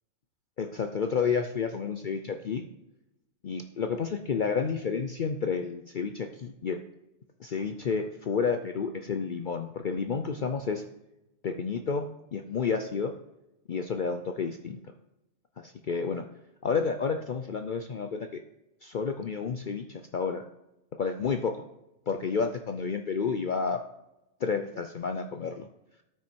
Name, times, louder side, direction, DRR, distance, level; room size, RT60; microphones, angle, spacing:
voice 1, 0.6-2.6 3.4-6.8 7.4-10.8 11.4-13.1 13.7-14.8 15.6-16.2 16.6-18.4 18.8-20.4 21.0-21.6 22.1-23.8 24.4-25.7, left 5 dB, 50° left, 7 dB, 0.6 m, -30 dB
13.0 x 6.0 x 4.5 m, 0.88 s
omnidirectional pair, 1.3 m